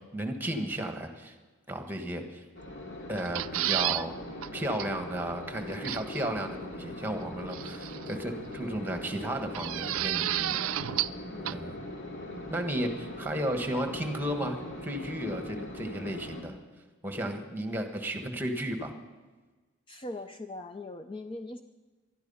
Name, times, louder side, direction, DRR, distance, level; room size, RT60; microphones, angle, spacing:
voice 1, 0.1-1.3 1.7-2.4 3.1-4.2 4.5-10.6 11.4-11.9 12.5-16.6 17.0-18.9, right 1 dB, 10° right, 5 dB, 1.5 m, -34 dB
sound 1, 2.5-16.4, left 1 dB, 60° left, 2.7 m, -41 dB
sound 2, 3.2-4.0 4.4-4.5 4.8-4.9 5.8-6.2 7.5-8.1 9.5-11.2 11.5-11.6, right 14 dB, 85° right, 0.4 m, -31 dB
voice 2, 19.9-21.6, left 2 dB, 25° left, 7 dB, 0.5 m, -40 dB
20.0 x 12.5 x 5.6 m, 1.3 s
head